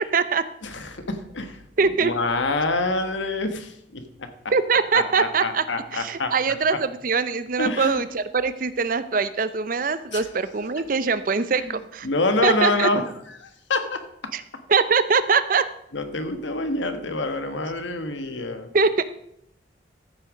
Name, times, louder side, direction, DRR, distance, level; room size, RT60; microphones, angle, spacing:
voice 1, 0.0-0.5 1.8-2.1 4.5-5.6 5.9-12.1 12.4-12.9 14.3-14.4 14.7-15.7 18.7-19.0, right 5 dB, 45° right, 14 dB, 0.6 m, -22 dB
voice 2, 0.6-1.6 2.0-4.3 4.9-6.8 7.6-8.0 8.4-8.5 10.1-10.3 10.8-10.9 11.6-11.8 12.0-14.0 15.9-18.7, left 2 dB, 80° left, 8 dB, 1.3 m, -27 dB
14.0 x 6.6 x 5.0 m, 0.72 s
head